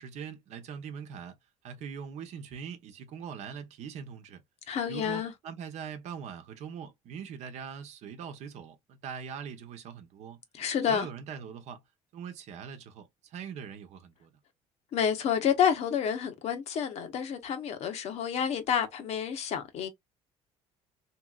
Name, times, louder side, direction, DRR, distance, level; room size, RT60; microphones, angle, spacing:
voice 1, 0.0-1.4 1.6-4.4 4.9-10.4 10.9-11.8 12.1-14.3, right 7 dB, 65° right, 0.9 m, -42 dB
voice 2, 4.7-5.3 10.5-11.1 14.9-19.9, left 8 dB, 55° left, 0.9 m, -29 dB
3.0 x 3.0 x 2.3 m
cardioid pair, 115°, 13 cm